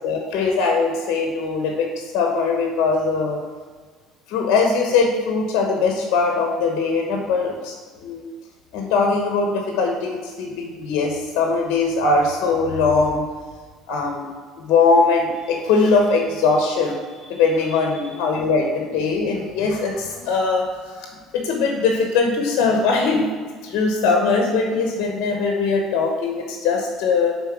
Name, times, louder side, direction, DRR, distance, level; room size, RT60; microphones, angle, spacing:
voice 1, 0.0-3.4 4.3-8.3 8.7-13.2 13.9-14.3 14.7-20.7 20.9-21.1 21.3-23.3 23.6-27.3, left 4 dB, 70° left, 1 dB, 1.0 m, -21 dB
5.6 x 4.0 x 5.9 m, 1.6 s
supercardioid pair, 85°, 0 cm